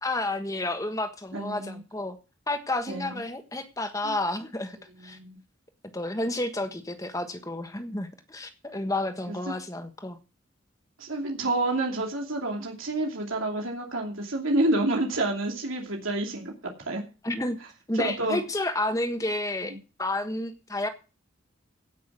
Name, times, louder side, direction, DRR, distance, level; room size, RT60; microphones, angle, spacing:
voice 1, 0.0-2.2 2.5-4.8 5.0-5.2 5.9-10.2 17.2-17.6 17.9-19.7 20.0-20.9, left 1 dB, 15° left, 8 dB, 1.4 m, -30 dB
voice 2, 1.3-1.8 2.9-3.2 4.0-4.1 5.0-5.4 9.3-9.5 11.0-16.5 16.9-17.0 17.9-18.4 19.6-19.8, right 2 dB, 85° right, 1 dB, 2.7 m, -29 dB
16.5 x 6.1 x 6.2 m, 0.33 s
head